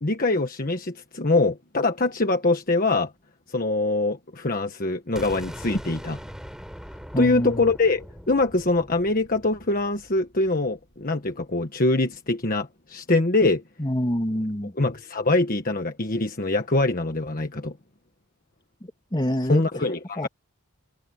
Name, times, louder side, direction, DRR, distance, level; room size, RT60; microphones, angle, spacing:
voice 1, 0.0-3.1 3.5-6.2 7.2-13.6 14.8-17.7 19.5-20.3, left 2 dB, 40° left, 1.4 m, -23 dB
sound 1, 5.1-10.9, equal, ahead, 6.0 m, -42 dB
voice 2, 7.1-7.7 13.8-14.7 19.1-19.6 20.2-20.3, equal, 20° left, 2.9 m, -26 dB
head